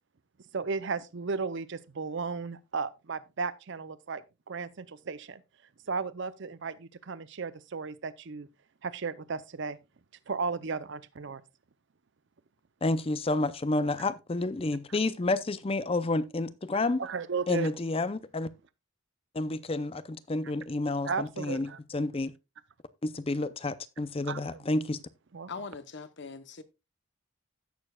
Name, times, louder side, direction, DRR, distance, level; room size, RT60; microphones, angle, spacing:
voice 1, 0.5-5.4 5.9-8.5 8.8-9.8 10.3-11.4 17.0-17.7 21.0-21.8 24.3-24.6 25.3-25.5, right 5 dB, 55° right, 0.6 m, -35 dB
voice 2, 12.8-17.0 17.5-18.5 19.3-22.3 23.0-25.0, left 2 dB, 25° left, 0.5 m, -30 dB
voice 3, 25.5-26.6, left 4 dB, 55° left, 0.8 m, -41 dB
16.0 x 6.8 x 2.3 m
head